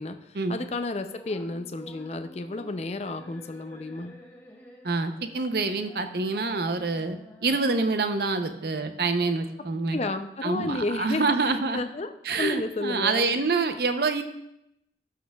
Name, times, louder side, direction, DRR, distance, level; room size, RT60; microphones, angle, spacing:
voice 1, 0.0-4.2 9.9-13.4, left 2 dB, 35° left, 8 dB, 0.5 m, -32 dB
sound 1, 1.0-10.0, equal, 10° left, 1.3 m, -50 dB
voice 2, 4.8-10.0 10.4-11.8 12.2-14.2, right 3 dB, 60° right, 8 dB, 0.6 m, -26 dB
16.5 x 6.4 x 2.3 m, 0.82 s
head